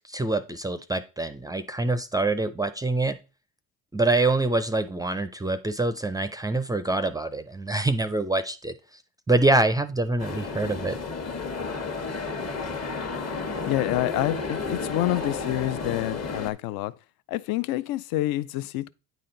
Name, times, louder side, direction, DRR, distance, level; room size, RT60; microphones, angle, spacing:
voice 1, 0.1-3.2 3.9-8.7 9.3-11.0, right 2 dB, 10° right, 0.4 m, -25 dB
sound 1, 10.2-16.5, left 4 dB, 40° left, 1.3 m, -32 dB
voice 2, 13.6-16.9 17.3-18.9, left 15 dB, 65° left, 0.5 m, -27 dB
9.2 x 4.3 x 3.8 m
supercardioid pair, 95°, 39 cm